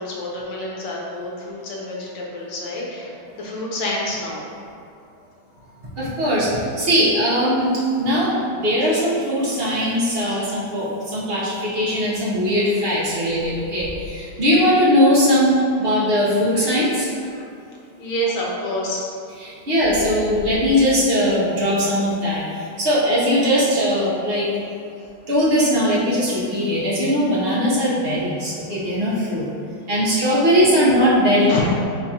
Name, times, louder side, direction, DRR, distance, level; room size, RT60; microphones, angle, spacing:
voice 1, 0.0-4.4 5.6-5.7 10.4-10.6 18.0-19.1 31.5-31.6, left 1 dB, 65° left, -4 dB, 1.3 m, -28 dB
voice 2, 6.0-7.7 8.0-17.1 19.4-22.4 22.8-24.5 25.3-29.5 29.9-31.6, equal, 50° right, -8 dB, 0.7 m, -19 dB
4.5 x 3.6 x 2.8 m, 2.4 s
omnidirectional pair, 2.2 m